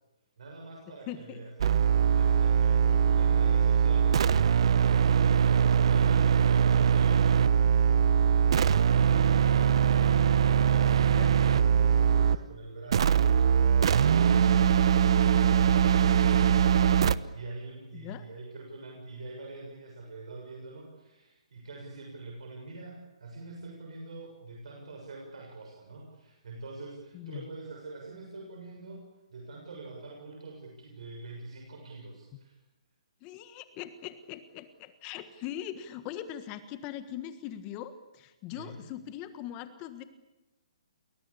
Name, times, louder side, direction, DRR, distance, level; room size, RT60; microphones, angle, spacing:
voice 1, 0.4-1.5 1.9-4.3 4.5-32.6 38.5-38.8, right 2 dB, 70° right, 1 dB, 7.0 m, -45 dB
voice 2, 1.1-1.4 2.9-3.0 11.1-11.3 17.9-18.3 27.1-27.4 33.2-40.0, left 11 dB, 25° left, 11 dB, 1.5 m, -41 dB
sound 1, 1.6-12.5 12.9-17.2, right 8 dB, 55° right, 1.0 m, -22 dB
29.5 x 20.5 x 8.6 m, 1.0 s
hypercardioid pair, 160°, 3 cm